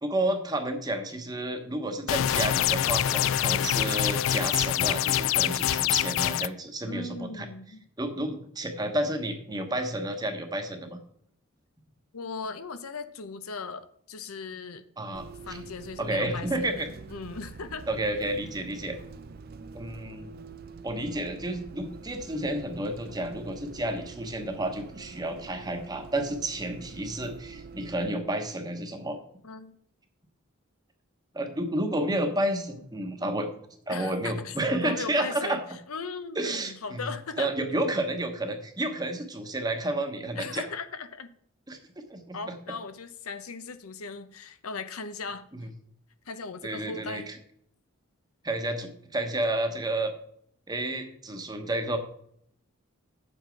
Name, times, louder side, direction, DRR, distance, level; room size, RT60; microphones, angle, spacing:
voice 1, 0.0-7.5 8.0-11.0 15.0-15.6 16.0-16.9 17.9-19.0 19.7-20.3 20.8-29.2 31.3-33.5 33.9-35.6 36.4-37.1 37.4-40.6 41.7-41.8 42.1-42.6 45.5-45.7 46.6-47.3 48.4-50.1 50.7-52.0, right 1 dB, 20° right, 5 dB, 1.0 m, -31 dB
sound 1, 2.1-6.5, left 11 dB, 65° left, 0.3 m, -25 dB
voice 2, 6.9-7.8 12.1-14.8 15.5-16.8 17.1-17.9 29.4-29.8 33.9-35.6 35.9-37.5 40.4-41.3 42.3-45.5 46.3-47.3, left 4 dB, 90° left, 11 dB, 0.7 m, -38 dB
Bus, 15.1-28.1, right 4 dB, 45° right, 0.4 m, -46 dB
9.2 x 7.2 x 4.6 m, 0.67 s
head